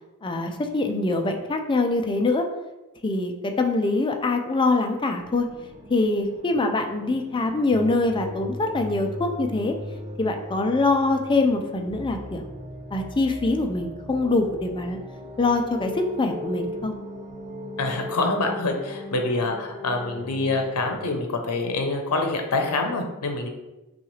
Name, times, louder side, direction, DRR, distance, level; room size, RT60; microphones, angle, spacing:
voice 1, 0.2-2.5 3.0-5.5 5.9-9.7 10.2-12.5 12.9-15.0 15.4-16.9, left 2 dB, 20° left, 5 dB, 0.4 m, -24 dB
sound 1, 5.2-21.2, left 1 dB, 25° right, 0.9 m, -38 dB
voice 2, 17.8-23.5, left 3 dB, 90° left, 4 dB, 0.6 m, -26 dB
5.8 x 2.4 x 3.1 m, 1.0 s
head